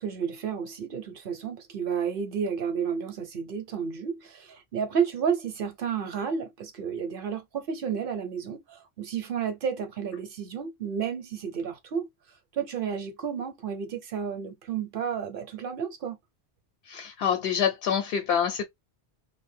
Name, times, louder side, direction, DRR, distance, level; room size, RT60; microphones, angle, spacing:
voice 1, 0.0-12.1 12.5-16.2, right 7 dB, 60° right, 0.8 m, -31 dB
voice 2, 16.9-18.6, left 8 dB, 75° left, 0.8 m, -26 dB
2.5 x 2.1 x 3.1 m
omnidirectional pair, 1.1 m